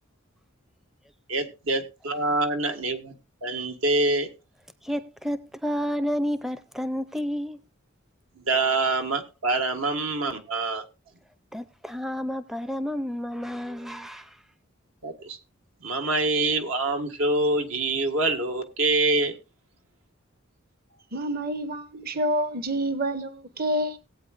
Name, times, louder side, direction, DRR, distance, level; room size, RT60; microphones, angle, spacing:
voice 1, 1.3-3.1 3.4-4.3 8.4-10.8 15.0-15.4 15.8-19.3, right 2 dB, 80° right, 1.8 m, -25 dB
voice 2, 4.8-7.6 11.5-14.4, equal, ahead, 0.5 m, -30 dB
voice 3, 21.1-24.0, equal, 45° right, 1.0 m, -28 dB
18.5 x 8.6 x 2.5 m
head